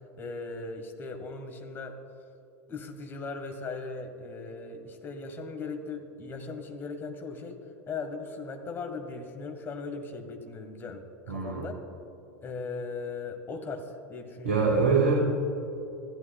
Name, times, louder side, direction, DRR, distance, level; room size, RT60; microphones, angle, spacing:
voice 1, 0.2-1.9 2.7-7.6 7.9-11.8 12.4-14.6, left 4 dB, 30° left, 5 dB, 1.3 m, -38 dB
voice 2, 11.3-11.7 14.4-15.1, right 5 dB, 75° right, -1 dB, 1.3 m, -24 dB
14.5 x 11.5 x 2.3 m, 2.8 s
figure-of-eight pair, 80°, 8 cm